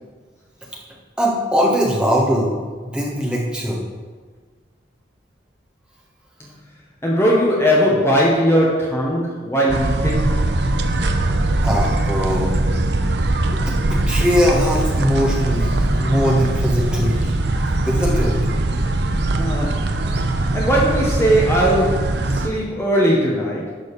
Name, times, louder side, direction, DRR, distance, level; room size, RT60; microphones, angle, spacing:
voice 1, 1.2-2.5 2.8-3.8 11.6-12.5 13.5-17.3 17.8-18.4, equal, 5° right, -4 dB, 1.4 m, -20 dB
voice 2, 7.0-10.4 19.4-20.2 20.5-23.7, equal, 15° left, -5 dB, 1.1 m, -19 dB
sound 1, 9.7-22.5, right 2 dB, 60° right, 0.7 m, -21 dB
11.0 x 4.0 x 6.8 m, 1.5 s
head